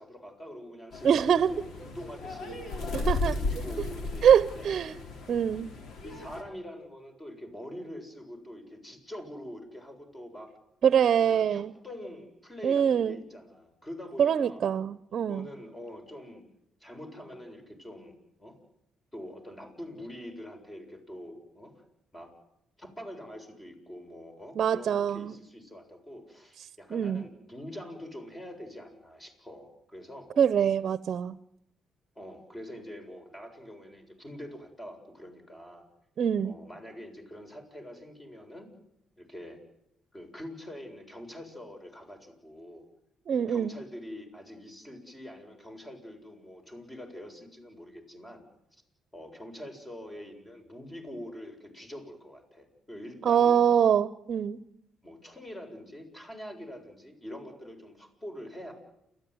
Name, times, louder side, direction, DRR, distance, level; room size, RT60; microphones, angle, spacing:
voice 1, 0.0-4.7 6.0-10.5 11.0-14.7 15.2-16.4 16.8-18.1 18.4-18.6 19.1-21.8 22.1-22.3 22.8-30.3 32.2-35.9 36.4-38.7 39.2-39.6 40.1-42.8 43.4-48.8 49.1-53.6 55.0-58.7, equal, 20° left, 5 dB, 7.4 m, -45 dB
sound 1, 0.9-6.4, left 3 dB, 70° left, 4.0 m, -35 dB
voice 2, 1.0-1.5 2.9-3.3 4.2-5.0 5.3-5.7 10.8-11.7 12.6-13.2 14.2-15.5 24.5-25.4 26.9-27.3 30.4-31.4 36.2-36.6 43.3-43.7 53.2-54.6, right 8 dB, 55° right, 14 dB, 0.9 m, -24 dB
29.5 x 14.5 x 9.6 m, 0.80 s
cardioid pair, 90°, 0 cm